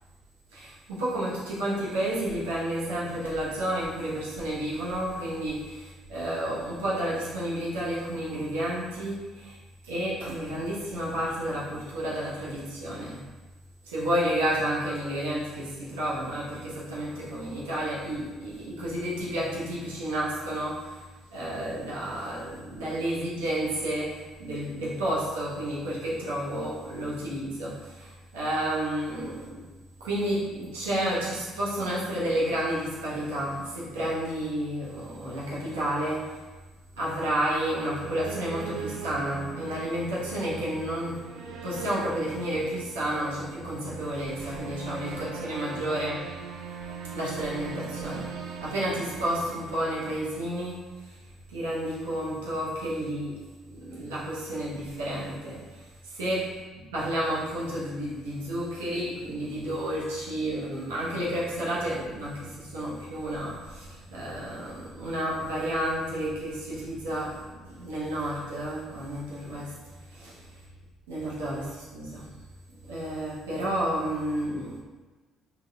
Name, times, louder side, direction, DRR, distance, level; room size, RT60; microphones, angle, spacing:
voice 1, 0.5-9.6 9.8-13.2 13.8-21.0 21.3-29.6 30.0-36.4 37.0-41.2 41.6-46.3 47.1-51.2 51.5-53.4 53.7-56.4 56.9-70.5 71.1-72.3 72.9-74.8, right 1 dB, 75° right, -7 dB, 0.8 m, -31 dB
sound 1, 37.6-50.4, right 5 dB, 60° right, 0.3 m, -40 dB
3.6 x 2.2 x 3.2 m, 1.3 s
figure-of-eight pair, 50°, 0 cm